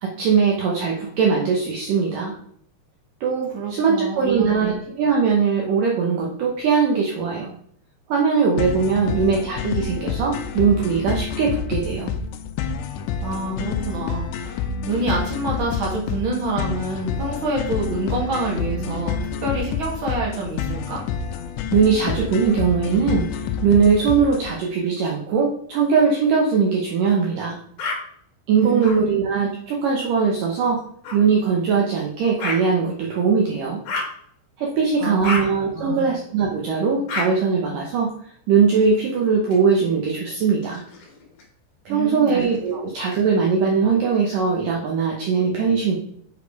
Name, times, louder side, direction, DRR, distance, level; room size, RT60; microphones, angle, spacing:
voice 1, 0.0-2.4 3.2-7.5 8.1-12.1 21.7-27.6 28.5-30.8 31.1-33.8 34.6-38.1 38.5-40.8 41.9-46.0, right 5 dB, 75° right, -1 dB, 1.9 m, -20 dB
voice 2, 3.5-4.8 9.0-9.1 13.2-21.0 28.6-29.2 35.0-35.3 35.7-36.1 41.9-42.4 42.7-42.8, right 2 dB, 45° right, -3 dB, 1.7 m, -27 dB
sound 1, 8.6-24.6, left 6 dB, 80° left, 2.8 m, -28 dB
sound 2, 27.8-28.0 28.8-29.0 31.0-31.2 32.4-32.6 33.8-34.1 35.2-35.4 37.1-37.3 38.8-39.6 40.5-41.4 42.3-43.2, left 3 dB, 55° left, 2.6 m, -30 dB
7.3 x 5.1 x 4.7 m, 0.64 s
omnidirectional pair, 5.2 m